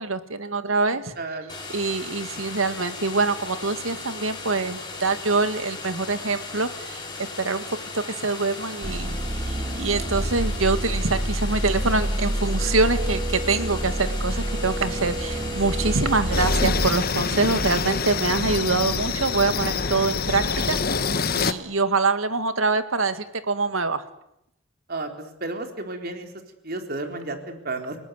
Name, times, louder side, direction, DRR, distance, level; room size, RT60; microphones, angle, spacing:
voice 1, 0.0-1.1 1.7-9.1 9.4-20.8 21.3-24.0, right 3 dB, 90° right, 10 dB, 2.1 m, -25 dB
voice 2, 1.2-1.6 24.9-26.3 26.6-28.0, right 2 dB, 50° right, 5 dB, 4.0 m, -32 dB
sound 1, 1.5-16.5, left 3 dB, 20° left, 5.3 m, -37 dB
sound 2, 8.8-16.9, right 1 dB, 30° right, 1.7 m, -27 dB
sound 3, 16.3-21.5, left 4 dB, 50° left, 1.3 m, -25 dB
29.5 x 18.5 x 9.5 m, 0.80 s
head